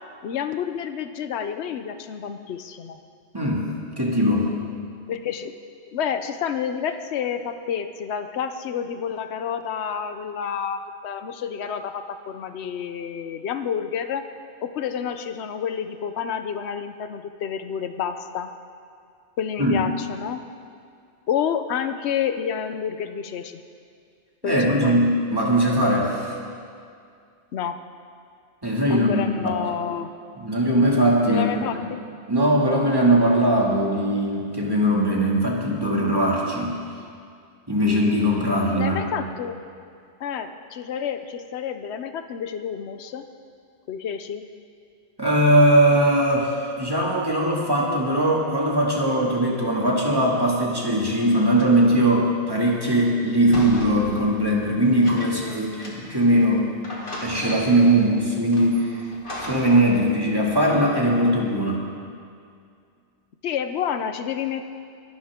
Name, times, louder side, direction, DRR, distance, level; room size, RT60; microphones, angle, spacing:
voice 1, 0.2-3.0 5.1-5.5 5.9-14.2 14.6-18.5 19.4-20.4 21.3-23.6 24.4-25.0 27.5-27.8 28.9-30.1 31.3-32.0 38.8-39.6 40.2-43.2 43.9-44.4 55.2-55.6 63.4-64.7, left 8 dB, 75° left, 8 dB, 1.0 m, -29 dB
voice 2, 3.3-3.7 4.0-4.5 19.6-19.8 24.4-26.3 28.6-29.6 30.4-31.5 32.3-36.8 37.7-39.0 45.2-56.7 57.2-59.0 59.4-61.8, right 1 dB, 20° right, -3 dB, 2.4 m, -20 dB
sound 1, 53.5-56.3 56.5-56.6 56.8-57.9 58.5-59.9, left 1 dB, 50° left, 2.2 m, -36 dB
24.0 x 11.5 x 3.7 m, 2.3 s
omnidirectional pair, 1.1 m